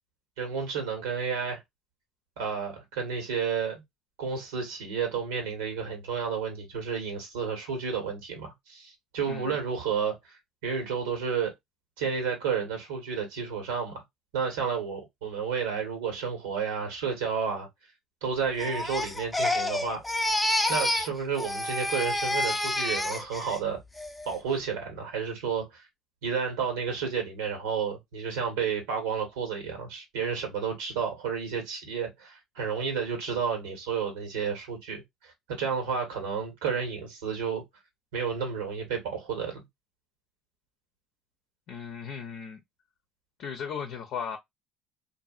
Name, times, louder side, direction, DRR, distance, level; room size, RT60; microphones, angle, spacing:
voice 1, 0.4-1.6 2.4-3.8 4.2-10.3 10.6-11.5 12.0-14.0 14.3-17.7 18.2-20.0 20.7-23.8 24.3-25.8 26.2-37.6 38.1-39.6, right 6 dB, 90° right, 1.4 m, -31 dB
voice 2, 9.3-9.6 41.7-42.6 43.4-44.4, left 7 dB, 65° left, 0.6 m, -36 dB
Crying sobbing, 18.6-21.1 21.4-23.6 24.0-24.4, left 1 dB, 10° left, 0.6 m, -28 dB
2.7 x 2.6 x 2.4 m
supercardioid pair, 75°, 0 cm